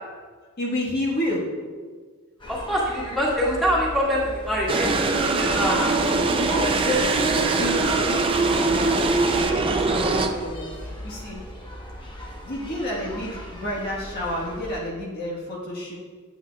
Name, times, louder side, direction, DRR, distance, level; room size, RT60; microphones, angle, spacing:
voice 1, 0.6-1.5 6.3-11.4 12.4-15.9, left 1 dB, 50° left, -5 dB, 1.5 m, -30 dB
sound 1, 2.4-14.7, equal, 25° left, 1.0 m, -38 dB
voice 2, 2.5-6.0, equal, ahead, -8 dB, 2.0 m, -25 dB
sound 2, 4.7-10.3, right 3 dB, 25° right, 0.5 m, -22 dB
8.8 x 8.2 x 2.4 m, 1.5 s
head